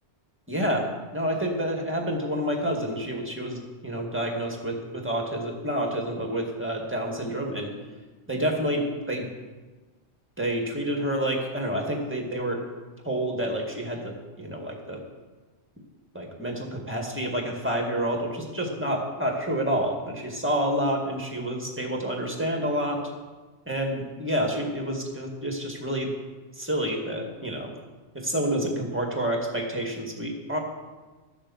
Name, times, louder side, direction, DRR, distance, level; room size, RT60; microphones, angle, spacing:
voice 1, 0.5-0.9 1.1-7.7 8.3-9.3 10.4-12.6 13.0-14.1 14.4-15.0 16.1-23.0 23.7-26.1 26.6-27.7 28.1-30.6, equal, 10° right, 0 dB, 2.1 m, -28 dB
13.5 x 7.1 x 7.2 m, 1.3 s
omnidirectional pair, 1.1 m